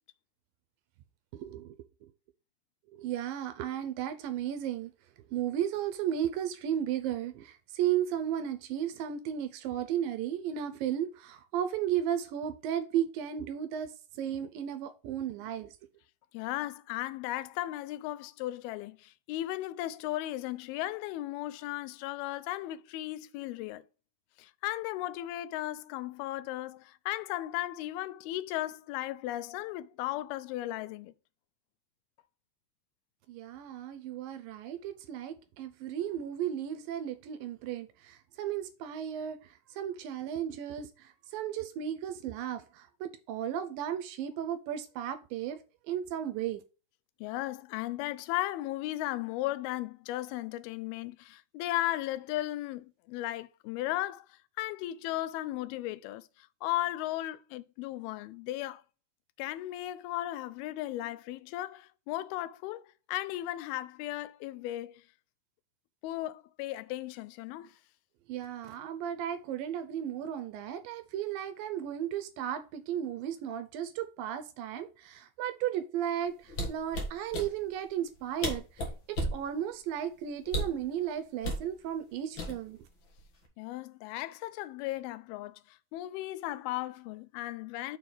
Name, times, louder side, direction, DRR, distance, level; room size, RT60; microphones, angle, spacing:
voice 1, 1.3-1.8 2.9-4.9 5.3-15.7 33.3-45.6 45.9-46.6 68.3-82.8, right 10 dB, 80° right, 2.2 m, -34 dB
voice 2, 16.3-23.8 24.4-31.1 47.2-58.8 59.4-65.0 66.0-67.8 83.6-88.0, left 15 dB, 85° left, 2.4 m, -36 dB
sound 1, 76.5-77.5 78.1-78.2 78.4-79.4 80.5-80.8 81.4-81.7 82.4-82.8 83.2-83.5, equal, 50° left, 1.5 m, -33 dB
6.8 x 3.8 x 4.8 m
omnidirectional pair, 4.3 m